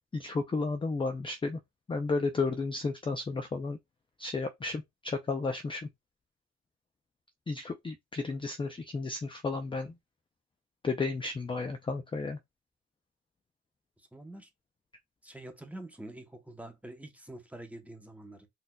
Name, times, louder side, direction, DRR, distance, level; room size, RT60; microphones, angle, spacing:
voice 1, 0.1-1.6 1.9-3.8 4.2-5.9 7.5-9.9 10.8-12.4, left 3 dB, 15° left, 0.4 m, -33 dB
voice 2, 14.0-14.5 15.2-18.5, right 1 dB, 5° right, 0.8 m, -46 dB
4.0 x 2.6 x 2.2 m
cardioid pair, 90°, 30 cm